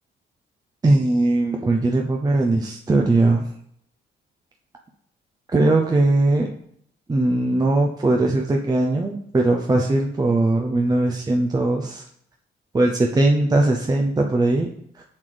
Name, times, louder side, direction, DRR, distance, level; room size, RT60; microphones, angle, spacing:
voice 1, 0.8-3.5 5.5-6.5 7.1-12.0 12.7-14.7 14.9-15.0, right 2 dB, 20° right, 1 dB, 0.6 m, -20 dB
7.3 x 6.1 x 3.4 m, 0.68 s
cardioid pair, 90°, 20 cm